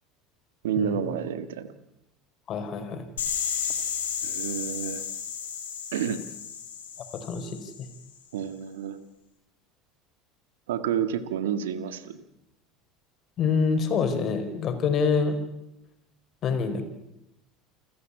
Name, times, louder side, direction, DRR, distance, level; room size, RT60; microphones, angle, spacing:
voice 1, 0.6-1.7 4.2-5.0 5.9-6.2 8.3-9.0 10.7-12.2, right 8 dB, 80° right, 11 dB, 1.9 m, -29 dB
voice 2, 2.5-3.1 7.2-7.9 13.4-15.4 16.4-16.8, left 5 dB, 45° left, 7 dB, 5.2 m, -26 dB
sound 1, 3.2-8.0, left 7 dB, 85° left, 4.6 m, -33 dB
29.0 x 14.0 x 8.6 m, 0.89 s
hypercardioid pair, 75°, 0 cm